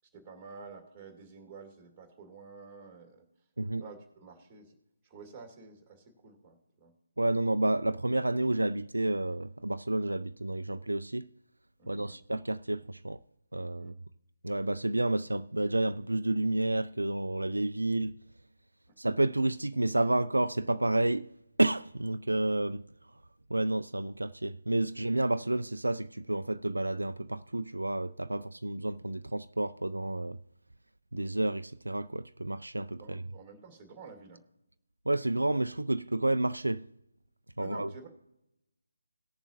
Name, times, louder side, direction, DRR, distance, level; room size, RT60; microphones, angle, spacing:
voice 1, 0.1-3.3 3.6-4.7 5.0-6.9 11.8-12.2 13.8-14.0 18.9-19.0 33.0-34.4 37.6-38.1, right 4 dB, 15° right, 2.2 m, -50 dB
voice 2, 3.6-3.9 7.2-11.3 11.9-13.2 13.5-13.9 14.4-18.2 19.0-21.3 21.6-22.8 23.5-30.4 31.1-33.3 35.1-36.8 37.6-37.9, right 2 dB, 75° right, 0.4 m, -30 dB
18.5 x 7.1 x 2.9 m
figure-of-eight pair, 150°, 0 cm